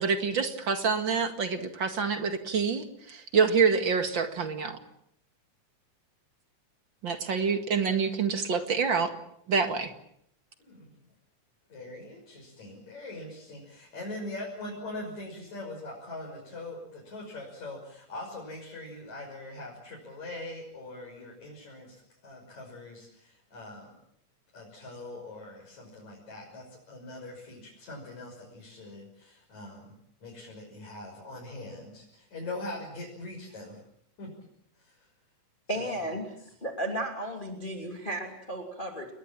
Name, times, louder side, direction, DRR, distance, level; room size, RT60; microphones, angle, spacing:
voice 1, 0.0-4.8 7.0-9.1 9.5-9.9, right 5 dB, 40° right, 7 dB, 2.4 m, -27 dB
voice 2, 10.6-10.9 11.7-24.0 24.5-33.8 34.2-34.3 34.8-35.0 35.7-35.9, left 2 dB, 60° left, -2 dB, 7.4 m, -42 dB
voice 3, 35.7-36.3 36.6-39.1, right 1 dB, 15° left, 3 dB, 2.8 m, -34 dB
29.5 x 21.0 x 7.5 m, 0.72 s
omnidirectional pair, 3.6 m